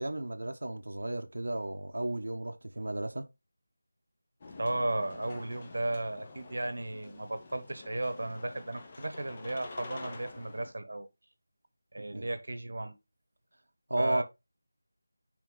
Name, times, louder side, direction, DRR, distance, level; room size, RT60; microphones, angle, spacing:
voice 1, 0.0-3.3 12.0-12.3 13.9-14.2, right 1 dB, 90° right, 1.0 m, -33 dB
sound 1, 4.4-10.7, left 3 dB, 15° left, 0.7 m, -48 dB
voice 2, 4.6-11.1 11.9-12.9 14.0-14.2, right 2 dB, 60° right, 1.1 m, -35 dB
6.1 x 4.4 x 3.8 m
figure-of-eight pair, 180°, 0 cm